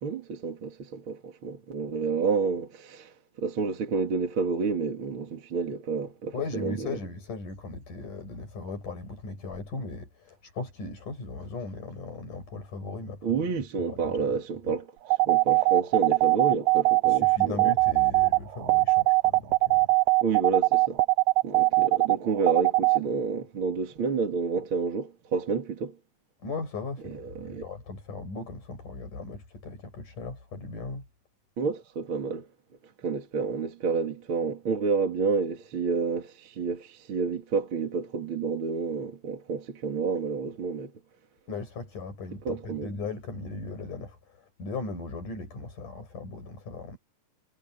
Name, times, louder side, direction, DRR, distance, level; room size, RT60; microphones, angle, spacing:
voice 1, 0.0-7.0 13.2-14.9 15.2-17.7 20.2-21.0 21.4-26.0 27.0-27.7 31.6-32.5 33.0-40.9 42.4-42.9, right 5 dB, 40° right, 2.6 m, -29 dB
voice 2, 6.3-13.4 13.9-14.1 17.1-19.9 26.4-31.0 41.5-44.2 44.6-47.0, left 3 dB, 65° left, 8.9 m, -38 dB
sound 1, 15.1-23.0, right 24 dB, 85° right, 2.6 m, -21 dB
omnidirectional pair, 3.9 m